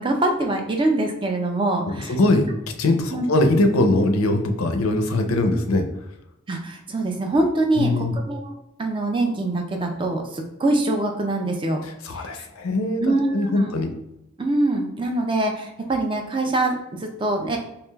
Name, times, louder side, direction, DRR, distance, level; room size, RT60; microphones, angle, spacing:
voice 1, 0.0-2.1 3.1-3.2 6.5-7.9 8.3-8.5 8.8-11.8 12.1-12.5 13.0-13.7 14.4-17.6, right 2 dB, 25° right, 3 dB, 0.4 m, -24 dB
voice 2, 1.8-5.9 7.8-8.2 11.8-13.9, left 2 dB, 85° left, 5 dB, 0.5 m, -22 dB
4.7 x 2.9 x 2.3 m, 0.86 s
head